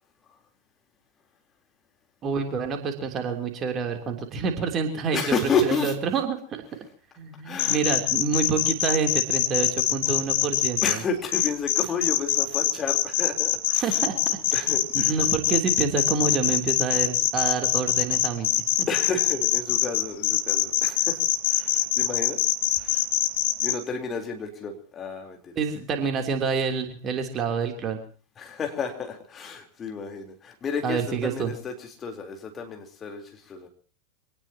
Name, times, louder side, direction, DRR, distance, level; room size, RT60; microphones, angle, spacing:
voice 1, 2.2-5.2 5.6-6.6 7.2-11.0 13.8-18.5 18.8-18.9 25.6-28.0 30.8-31.5, right 5 dB, 30° right, 4 dB, 3.3 m, -28 dB
voice 2, 5.1-5.9 7.4-7.8 10.8-14.0 14.5-15.2 18.9-22.4 22.7-23.1 23.6-25.6 28.4-33.7, left 4 dB, 25° left, 3 dB, 3.9 m, -31 dB
sound 1, 7.6-10.9 11.3-23.7, left 14 dB, 50° left, 1.9 m, -23 dB
26.0 x 18.5 x 3.0 m, 0.41 s
figure-of-eight pair, 90°, 0 cm